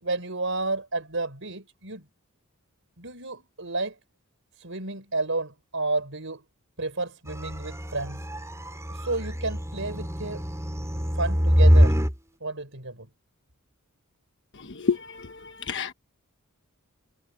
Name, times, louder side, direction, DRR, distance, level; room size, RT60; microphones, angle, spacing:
voice 1, 0.0-2.0 3.0-4.0 4.6-6.4 6.8-8.2 8.9-10.4 11.1-12.0 12.4-13.1, right 2 dB, 60° right, 5.9 m, -31 dB
sound 1, 7.3-12.1, equal, 15° right, 7.0 m, -23 dB
voice 2, 14.7-15.9, left 5 dB, 55° left, 1.2 m, -29 dB
head